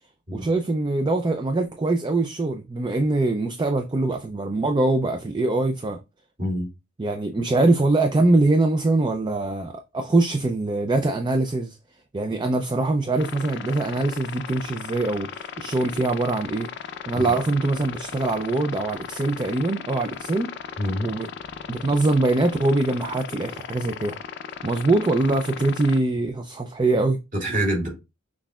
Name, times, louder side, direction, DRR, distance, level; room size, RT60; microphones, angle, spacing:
voice 1, 0.3-6.0 7.0-11.8 12.1-16.7 17.1-20.5 21.0-21.3 21.7-24.2 24.6-27.2, right 2 dB, 20° right, 0.4 m, -23 dB
sound 1, 13.2-26.0, left 7 dB, 55° left, 0.5 m, -37 dB
voice 2, 20.8-21.1 27.3-27.9, equal, 40° right, 2.3 m, -26 dB
6.1 x 3.6 x 2.3 m
head